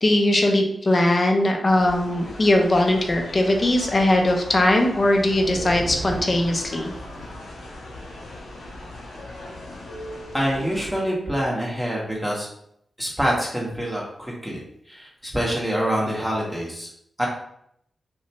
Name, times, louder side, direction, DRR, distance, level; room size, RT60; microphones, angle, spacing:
voice 1, 0.0-6.9, left 1 dB, 45° left, 2 dB, 0.5 m, -20 dB
sound 1, 1.7-10.9, left 1 dB, 90° left, 0.6 m, -39 dB
sound 2, 4.8-7.7, right 3 dB, 50° right, 0.5 m, -36 dB
voice 2, 10.3-12.5 13.0-14.6 14.9-15.1 15.3-16.9 17.2-17.3, equal, ahead, -4 dB, 1.1 m, -25 dB
2.7 x 2.2 x 2.8 m, 0.72 s
cardioid pair, 50°, 0 cm